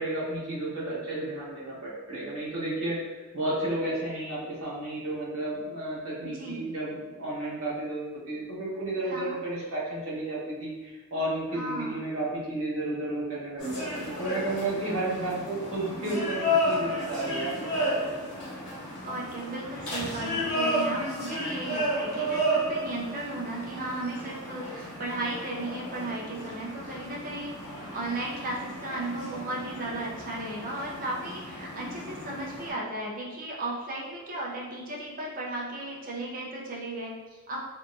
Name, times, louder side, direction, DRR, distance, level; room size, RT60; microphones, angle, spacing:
voice 1, 0.0-18.0, right 2 dB, 75° right, -8 dB, 1.2 m, -32 dB
voice 2, 6.2-6.6 9.0-9.4 11.5-12.0 16.0-16.3 19.0-37.6, right 2 dB, 40° right, -3 dB, 0.5 m, -35 dB
sound 1, 13.6-32.7, equal, 75° left, 1.1 m, -33 dB
2.7 x 2.3 x 2.6 m, 1.2 s
head